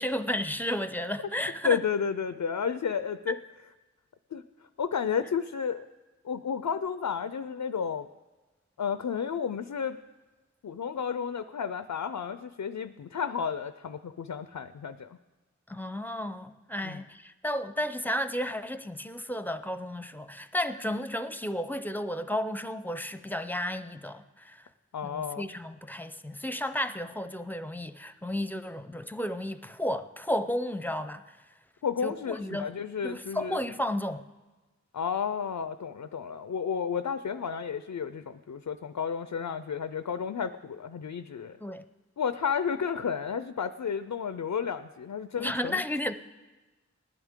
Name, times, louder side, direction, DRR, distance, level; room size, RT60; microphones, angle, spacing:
voice 1, 0.0-1.8 3.3-3.4 15.7-24.6 25.0-31.2 32.0-32.7 33.0-34.2 41.6-41.8 45.4-46.1, left 1 dB, 5° left, 0.6 m, -33 dB
voice 2, 1.6-3.4 4.3-4.4 4.8-5.9 6.2-8.1 8.8-10.0 10.6-15.2 16.8-17.0 24.9-25.5 31.8-33.6 34.9-41.6 42.2-45.8, left 7 dB, 85° left, 0.5 m, -32 dB
19.5 x 11.5 x 3.7 m
wide cardioid pair, 45°, 30 cm